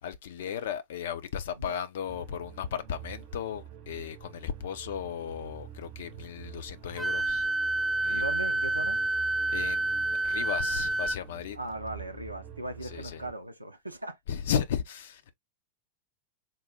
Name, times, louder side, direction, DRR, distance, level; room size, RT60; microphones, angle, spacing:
voice 1, 0.0-7.5 8.0-8.4 9.1-11.6 12.8-13.3 14.3-15.4, left 8 dB, 60° left, 0.6 m, -35 dB
sound 1, 2.1-13.3, right 11 dB, 40° right, 0.7 m, -47 dB
Wind instrument woodwind instrument, 7.0-11.2, right 2 dB, ahead, 0.3 m, -28 dB
voice 2, 8.1-9.0 11.5-14.2, right 2 dB, 85° right, 0.5 m, -38 dB
3.9 x 2.1 x 3.4 m
figure-of-eight pair, 90°, 0 cm